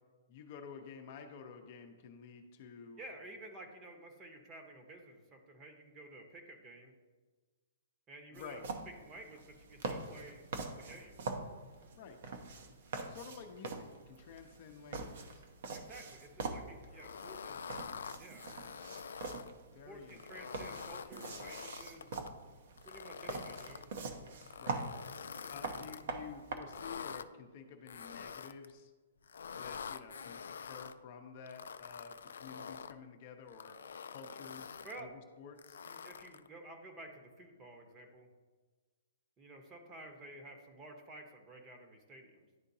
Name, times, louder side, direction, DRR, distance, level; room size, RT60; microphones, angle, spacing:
voice 1, 0.3-3.0 8.3-8.6 12.0-12.2 13.0-15.4 19.7-20.4 24.6-24.9 25.5-28.9 29.5-33.8 34.1-35.1 35.4-35.8, left 6 dB, 45° left, 4 dB, 0.7 m, -51 dB
voice 2, 3.0-6.9 8.1-8.6 9.0-10.4 10.8-11.2 15.7-17.6 18.0-18.5 19.8-22.1 22.8-23.9 34.8-35.1 35.9-38.3 39.4-42.5, right 1 dB, 20° right, 3 dB, 0.9 m, -52 dB
sound 1, 8.3-26.6, right 3 dB, 60° right, 0.8 m, -44 dB
sound 2, 16.9-19.5 20.1-22.3 22.8-23.9 24.4-26.0 26.6-27.3 27.9-28.7 29.2-30.9 31.5-33.0 33.5-35.0 35.6-36.5, left 6 dB, 80° left, 0.3 m, -46 dB
11.0 x 3.7 x 2.7 m, 1.4 s
hypercardioid pair, 150°, 0 cm